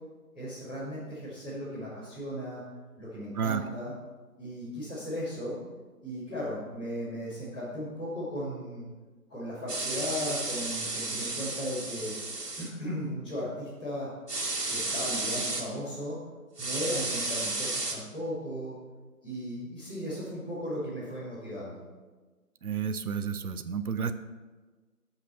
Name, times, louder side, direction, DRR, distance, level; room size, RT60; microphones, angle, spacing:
voice 1, 0.3-2.6 3.0-3.9 4.4-5.5 6.0-8.8 9.3-12.1 12.6-14.1 14.7-16.2 16.6-18.7 19.2-21.8, equal, 5° left, -18 dB, 1.7 m, -36 dB
sound 1, 9.7-12.7 14.3-15.6 16.6-17.9, right 2 dB, 85° right, 2.2 m, -32 dB
voice 2, 22.6-24.1, right 6 dB, 70° right, 10 dB, 0.8 m, -31 dB
13.0 x 5.8 x 4.4 m, 1.3 s
figure-of-eight pair, 175°, 46 cm